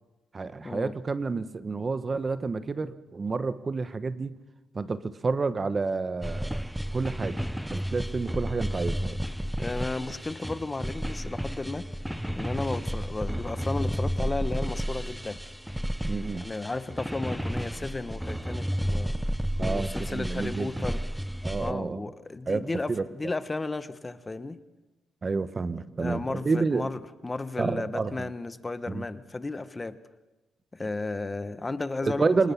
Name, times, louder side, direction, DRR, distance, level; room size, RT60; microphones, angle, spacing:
voice 1, 0.3-4.4 4.7-6.6 6.9-7.4 7.7-9.2 16.0-16.4 19.6-20.9 21.4-22.0 22.5-23.0 25.2-26.9 27.6-28.3 28.9-29.0 32.0-32.5, right 4 dB, 30° right, 13 dB, 1.1 m, -29 dB
sound 1, 6.2-21.7, equal, ahead, 0.7 m, -32 dB
voice 2, 9.6-11.9 12.3-15.4 16.3-19.1 19.6-21.0 21.6-24.6 26.0-30.0 30.7-32.3, left 3 dB, 20° left, 13 dB, 1.1 m, -34 dB
25.5 x 19.5 x 7.1 m, 1.1 s
cardioid pair, 90°, 0 cm